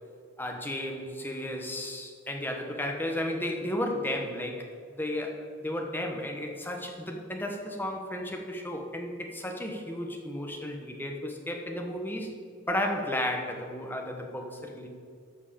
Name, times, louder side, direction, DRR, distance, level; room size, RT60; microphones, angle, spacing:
voice 1, 0.4-12.3 12.7-14.9, left 1 dB, 10° left, 2 dB, 1.1 m, -33 dB
13.0 x 4.6 x 7.6 m, 2.2 s
head